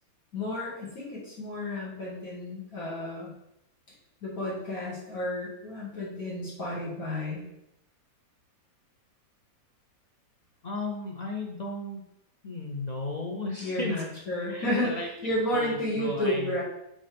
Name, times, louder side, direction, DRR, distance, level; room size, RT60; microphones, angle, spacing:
voice 1, 0.3-3.3 4.2-7.5 13.6-16.6, left 1 dB, 70° left, -7 dB, 2.4 m, -31 dB
voice 2, 10.6-12.0 12.4-13.9 14.4-16.5, left 2 dB, 40° left, 0 dB, 0.6 m, -35 dB
7.5 x 4.0 x 3.4 m, 0.81 s
omnidirectional pair, 1.6 m